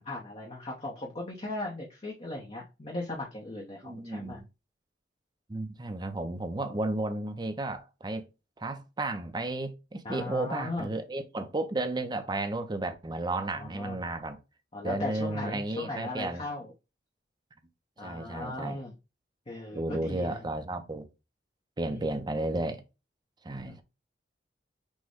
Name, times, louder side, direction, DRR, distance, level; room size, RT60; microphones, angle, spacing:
voice 1, 0.0-4.4 10.0-10.9 13.5-14.0 14.7-16.7 18.0-18.9 19.5-20.4 21.8-22.3 23.6-23.8, left 2 dB, 35° left, 0.8 m, -38 dB
voice 2, 3.8-4.5 5.5-8.2 8.6-14.4 14.8-16.4 18.0-18.8 19.7-21.1 21.8-22.8 23.4-23.8, right 2 dB, 25° right, 0.6 m, -33 dB
6.2 x 2.2 x 3.5 m
head